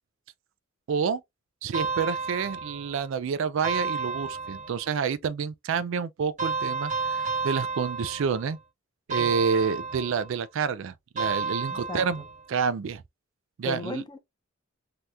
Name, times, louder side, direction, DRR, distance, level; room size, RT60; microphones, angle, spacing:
voice 1, 0.9-1.2 1.6-8.6 9.1-12.2 12.5-13.0 13.6-14.0, right 6 dB, 65° right, 0.4 m, -28 dB
sound 1, 1.7-3.0 3.6-4.9 6.4-8.6 9.1-10.4 11.2-12.5, right 4 dB, 40° right, 1.4 m, -31 dB
voice 2, 11.7-12.3 13.6-14.2, left 3 dB, 20° left, 0.5 m, -37 dB
3.3 x 2.8 x 2.3 m
head